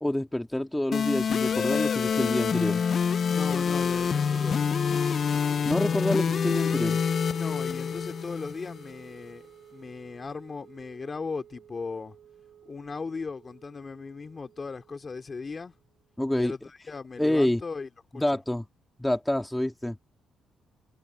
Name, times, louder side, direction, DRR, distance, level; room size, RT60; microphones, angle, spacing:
voice 1, 0.0-2.8 5.6-7.0 16.2-16.5 17.2-17.6 18.1-18.6 19.0-20.0, left 1 dB, 5° left, 2.3 m, -27 dB
sound 1, 0.9-8.9, left 6 dB, 50° left, 0.3 m, -26 dB
voice 2, 3.3-4.6 7.3-9.4 9.7-12.2 12.6-15.7 16.3-18.2, left 4 dB, 35° left, 3.9 m, -37 dB
Wind instrument woodwind instrument, 3.4-15.7, right 9 dB, 65° right, 4.2 m, -50 dB
cardioid pair, 90°, 0 cm